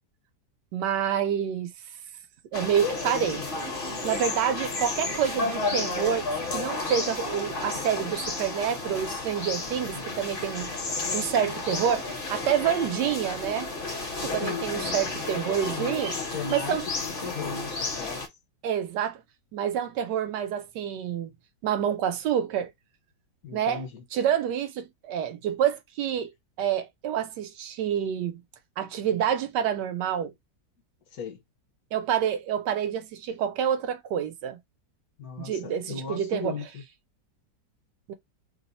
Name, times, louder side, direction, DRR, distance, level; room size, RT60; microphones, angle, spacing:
voice 1, 0.7-1.7 2.5-3.4 4.0-10.7 11.1-16.1 16.5-16.8 18.6-19.2 19.5-21.3 21.6-22.7 23.5-23.8 24.1-26.3 26.6-28.4 28.8-30.3 31.9-34.6 35.4-36.5 38.1-38.2, right 9 dB, 75° right, 1.2 m, -28 dB
sound 1, 2.5-18.3, left 3 dB, 40° left, 0.8 m, -32 dB
voice 2, 14.4-15.0 15.5-17.7 18.0-18.2 23.4-24.0 31.1-31.4 35.2-36.8, left 7 dB, 60° left, 1.3 m, -37 dB
3.0 x 2.1 x 3.9 m
omnidirectional pair, 1.9 m